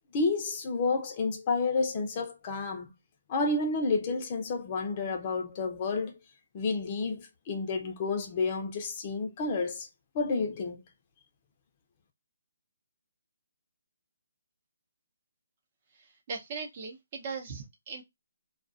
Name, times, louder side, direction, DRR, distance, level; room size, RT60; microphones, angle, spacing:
voice 1, 0.1-2.9 3.3-6.2 6.5-9.9 10.1-10.8, left 3 dB, 30° left, 0.6 m, -30 dB
voice 2, 16.0-18.0, right 4 dB, 35° right, 0.7 m, -39 dB
2.3 x 2.3 x 2.5 m
hypercardioid pair, 155°, 0 cm